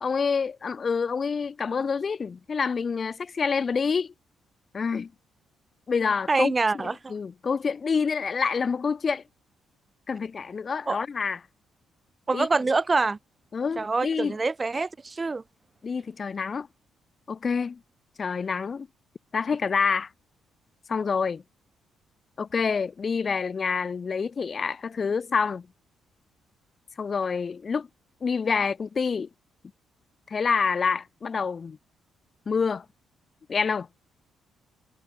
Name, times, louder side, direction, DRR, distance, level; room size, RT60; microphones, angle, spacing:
voice 1, 0.0-4.1 4.7-5.1 5.9-6.5 6.8-9.2 10.1-11.4 12.3-12.5 13.5-14.4 15.8-16.7 17.3-17.8 18.2-18.9 19.3-20.1 20.9-21.4 22.4-25.7 27.0-27.9 28.2-29.3 30.3-31.8 32.5-32.8 33.5-33.9, left 5 dB, 40° left, 0.7 m, -27 dB
voice 2, 6.3-7.1 10.9-11.0 12.3-13.2 13.8-15.4, right 3 dB, 25° right, 0.5 m, -25 dB
cardioid pair, 90°, 0 cm